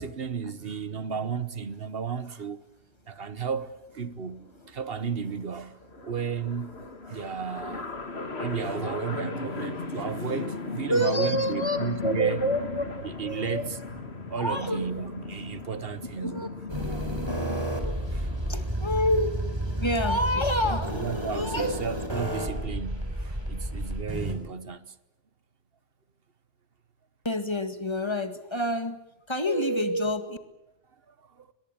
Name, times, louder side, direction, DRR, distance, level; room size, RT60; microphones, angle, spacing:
voice 1, 0.0-2.6 3.1-7.8 8.4-12.4 13.0-13.6 14.3-16.5 18.1-18.3 20.9-24.9 31.4-31.5, right 6 dB, 65° right, 1.2 m, -33 dB
sound 1, 3.5-3.6 3.9-4.0 4.2-20.0, left 3 dB, 80° left, 2.3 m, -37 dB
voice 2, 10.9-13.7 14.4-14.9 16.2-18.0 18.5-19.4 19.8-21.8 27.2-29.0 29.3-30.4, equal, 25° left, 1.9 m, -28 dB
sound 2, 16.7-24.4, right 1 dB, 25° right, 4.4 m, -31 dB
23.0 x 21.5 x 8.7 m
omnidirectional pair, 1.1 m